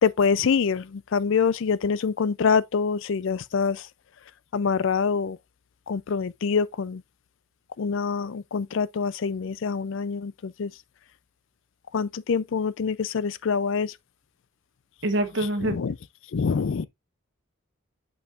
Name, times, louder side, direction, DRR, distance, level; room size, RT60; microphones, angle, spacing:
voice 1, 0.0-3.9 4.5-5.4 5.9-7.0 7.8-10.7 11.9-13.9 15.4-16.0 16.3-16.9, left 5 dB, 60° left, 0.4 m, -25 dB
voice 2, 15.0-15.8, right 1 dB, 55° right, 1.2 m, -25 dB
8.5 x 5.3 x 2.4 m
head